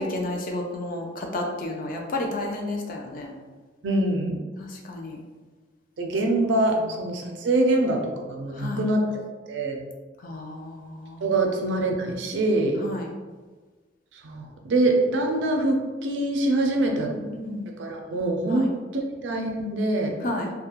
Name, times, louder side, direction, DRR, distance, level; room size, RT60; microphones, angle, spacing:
voice 1, 0.0-3.3 4.6-5.2 8.5-8.8 10.2-11.3 12.8-13.1 17.0-17.6 18.5-18.7 20.2-20.5, left 2 dB, 45° left, 2 dB, 0.4 m, -32 dB
voice 2, 3.8-4.4 6.0-9.8 11.2-12.8 14.2-17.1 17.8-20.1, right 2 dB, 75° right, 2 dB, 0.4 m, -24 dB
2.3 x 2.1 x 2.8 m, 1.4 s
head